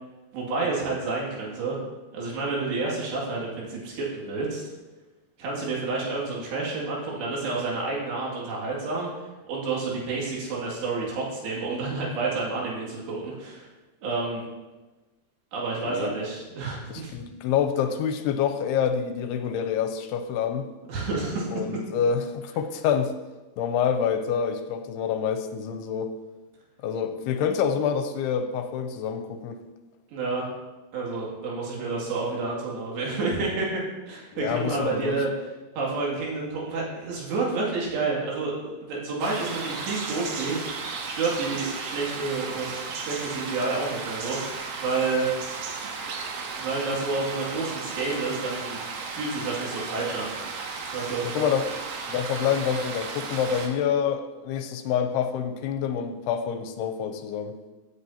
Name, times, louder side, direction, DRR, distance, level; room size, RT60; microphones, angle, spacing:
voice 1, 0.3-1.8 2.1-4.6 5.4-9.1 9.4-13.7 14.0-14.4 15.5-17.1 20.9-21.5 30.1-30.5 30.9-35.3 35.8-40.7 41.1-45.2 46.1-48.8 49.1-50.3 50.9-51.5 52.4-52.5, right 3 dB, 90° right, -4 dB, 4.6 m, -29 dB
voice 2, 16.9-20.7 21.5-23.1 23.6-26.2 26.8-29.6 34.3-35.2 51.2-51.7 52.1-57.6, left 7 dB, 80° left, 8 dB, 2.6 m, -27 dB
sound 1, 39.2-53.7, right 4 dB, 65° right, 2.6 m, -35 dB
16.0 x 8.4 x 2.8 m, 1.2 s
omnidirectional pair, 4.8 m